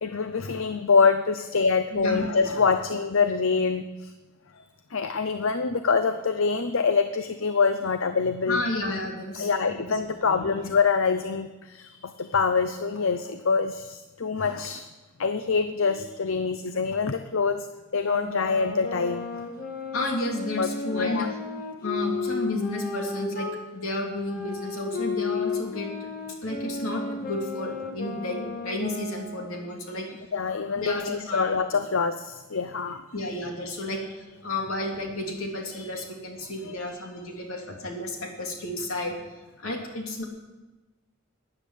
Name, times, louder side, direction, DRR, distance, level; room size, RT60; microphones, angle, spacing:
voice 1, 0.0-4.1 4.6-4.7 4.9-8.6 9.4-14.8 15.2-17.7 17.9-19.3 20.6-21.3 30.3-33.0 33.3-34.0 35.7-35.9 36.6-36.8, left 5 dB, 65° left, 9 dB, 0.7 m, -25 dB
voice 2, 1.9-2.4 8.5-9.9 10.2-10.5 19.9-21.3 21.8-26.1 26.4-30.1 30.7-31.5 33.1-34.1 34.4-39.2 39.6-40.2, left 2 dB, 80° left, 1 dB, 3.0 m, -32 dB
sound 1, 18.0-23.6 24.2-29.7, left 3 dB, 45° left, 1.8 m, -34 dB
13.5 x 9.7 x 8.4 m, 1.1 s
head